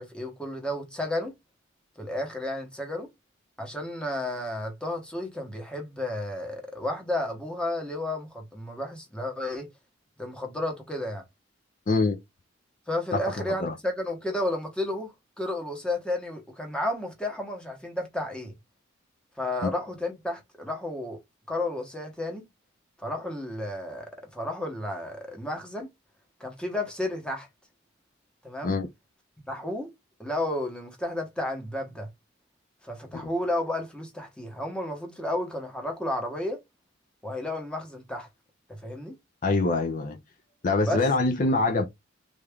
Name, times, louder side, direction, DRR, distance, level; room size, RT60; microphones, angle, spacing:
voice 1, 0.0-1.3 2.0-3.1 3.6-9.7 10.2-11.2 12.9-18.5 19.4-21.2 21.5-22.4 23.0-25.9 26.4-27.5 28.4-28.7 29.5-29.9 30.2-32.1 32.8-36.6 37.2-38.3 38.7-39.2 40.8-41.0, left 1 dB, 5° left, 1.0 m, -32 dB
voice 2, 11.9-12.2 13.6-13.7 19.6-19.7 28.6-28.9 33.1-33.3 39.4-40.2 40.6-41.8, left 3 dB, 40° left, 0.5 m, -24 dB
3.4 x 2.5 x 3.4 m
head